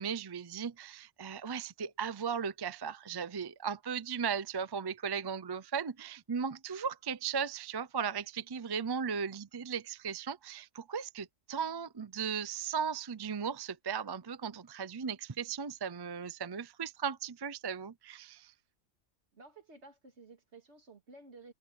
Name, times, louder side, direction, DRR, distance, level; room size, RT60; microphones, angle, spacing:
voice 1, 0.0-18.5, right 6 dB, 35° right, 0.4 m, -37 dB
voice 2, 19.3-21.5, right 3 dB, 55° right, 2.8 m, -54 dB
omnidirectional pair, 1.3 m